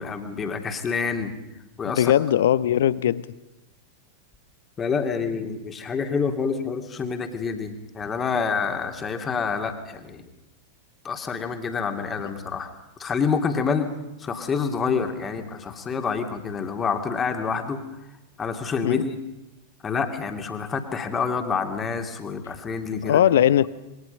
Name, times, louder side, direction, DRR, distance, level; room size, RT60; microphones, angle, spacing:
voice 1, 0.0-1.3 1.8-2.1 4.8-10.3 11.0-12.7 13.0-13.9 14.2-17.8 18.4-19.2 19.8-23.2, left 5 dB, 20° left, 5 dB, 2.7 m, -27 dB
voice 2, 2.0-3.3 18.8-19.0 23.0-23.7, left 11 dB, 60° left, 19 dB, 0.8 m, -19 dB
27.5 x 22.5 x 5.4 m, 0.94 s
figure-of-eight pair, 90°, 0 cm